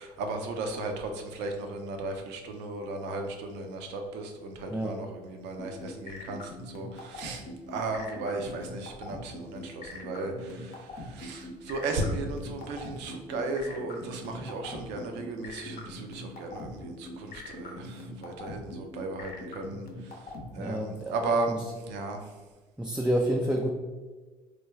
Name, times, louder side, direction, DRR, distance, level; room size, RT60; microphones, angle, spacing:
voice 1, 0.0-22.3, right 2 dB, 70° right, 4 dB, 0.5 m, -35 dB
sound 1, 5.6-20.4, left 2 dB, 55° left, 0.7 m, -42 dB
voice 2, 20.6-21.2 21.5-21.6 22.8-23.7, right 1 dB, 5° right, 0 dB, 0.4 m, -29 dB
3.1 x 2.1 x 3.4 m, 1.3 s
hypercardioid pair, 55°, 19 cm